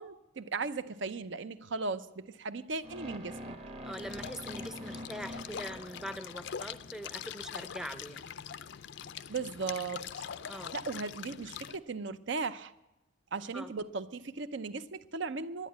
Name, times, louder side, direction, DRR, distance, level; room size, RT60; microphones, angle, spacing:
voice 1, 0.0-3.5 9.3-10.0 10.7-12.7 13.3-15.7, right 4 dB, 65° right, 13 dB, 0.6 m, -37 dB
sound 1, 2.8-6.9, equal, 30° right, 1.0 m, -45 dB
voice 2, 3.8-8.3 10.5-10.8 13.5-13.7, equal, ahead, 10 dB, 0.5 m, -43 dB
sound 2, 3.9-11.8, left 8 dB, 60° left, 0.4 m, -43 dB
11.0 x 10.5 x 9.3 m, 1.0 s
head